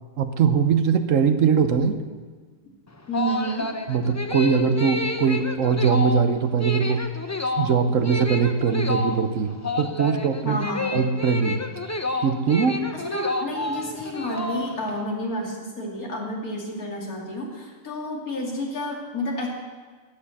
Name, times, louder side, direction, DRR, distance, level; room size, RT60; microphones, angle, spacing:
voice 1, 0.2-2.0 3.9-7.1 7.6-10.7 10.9-11.6 12.2-12.9, right 6 dB, 65° right, 9 dB, 1.2 m, -21 dB
sound 1, 2.9-15.0, left 2 dB, 20° left, 0.5 m, -30 dB
voice 2, 3.1-3.7 10.4-11.0 13.0-19.5, equal, 80° left, -1 dB, 3.0 m, -30 dB
13.0 x 8.8 x 8.5 m, 1.4 s
omnidirectional pair, 1.5 m